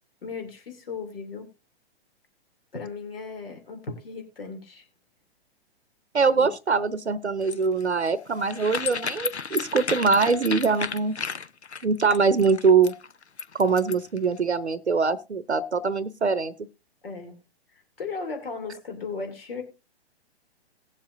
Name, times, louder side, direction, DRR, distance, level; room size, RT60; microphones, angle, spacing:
voice 1, 0.2-1.5 2.7-4.8 6.3-6.5 17.0-17.3 17.7-19.6, left 4 dB, 60° left, 2.8 m, -36 dB
voice 2, 6.1-11.2 11.8-12.9 13.5-16.5, right 5 dB, 80° right, 0.8 m, -23 dB
sound 1, 7.4-14.2, left 5 dB, 85° left, 0.7 m, -33 dB
19.0 x 7.4 x 2.6 m
figure-of-eight pair, 120°, 33 cm